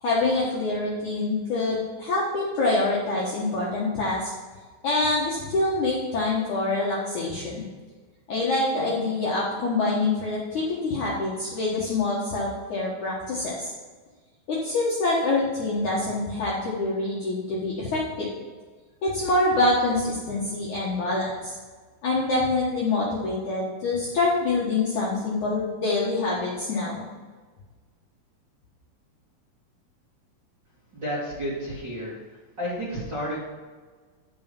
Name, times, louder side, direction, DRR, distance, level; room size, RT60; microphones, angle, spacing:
voice 1, 0.0-4.3 4.8-7.7 8.3-13.7 14.5-18.3 19.0-21.5 22.0-27.1, left 2 dB, 60° left, -6 dB, 2.1 m, -25 dB
voice 2, 30.9-32.2 32.6-33.4, equal, 35° right, -8 dB, 1.8 m, -31 dB
11.5 x 6.7 x 5.5 m, 1.4 s
omnidirectional pair, 5.8 m